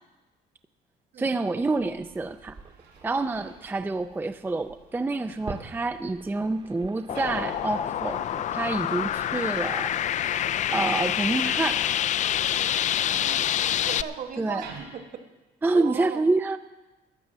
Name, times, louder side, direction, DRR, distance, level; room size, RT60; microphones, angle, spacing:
voice 1, 1.2-2.6 3.0-9.9 10.7-11.8 14.4-14.7 15.6-16.6, right 3 dB, 10° right, 10 dB, 0.4 m, -27 dB
sound 1, 1.5-14.8, right 5 dB, 85° right, 4.5 m, -52 dB
sound 2, 2.0-9.2, right 4 dB, 30° right, 1.0 m, -46 dB
sound 3, 7.1-14.0, left 11 dB, 45° left, 0.4 m, -27 dB
voice 2, 13.1-13.4 13.8-15.2 15.7-16.2, right 7 dB, 55° right, 6 dB, 1.5 m, -37 dB
13.0 x 9.2 x 7.4 m, 1.1 s
cardioid pair, 110°, 17 cm